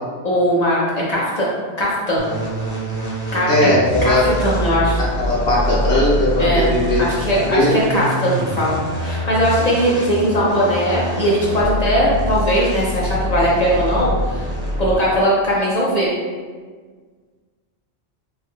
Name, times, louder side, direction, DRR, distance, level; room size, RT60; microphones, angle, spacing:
voice 1, 0.2-0.8 1.1-1.5 1.8-2.3 3.3-3.5 4.0-5.0 6.4-6.7 7.0-14.5 14.8-16.1, equal, 50° left, -6 dB, 0.5 m, -19 dB
sound 1, 2.2-15.1, equal, 5° right, 0.4 m, -25 dB
voice 2, 3.5-4.4 5.0-7.0 7.5-7.7, left 1 dB, 65° left, -8 dB, 0.9 m, -18 dB
2.7 x 2.2 x 3.5 m, 1.5 s
omnidirectional pair, 1.2 m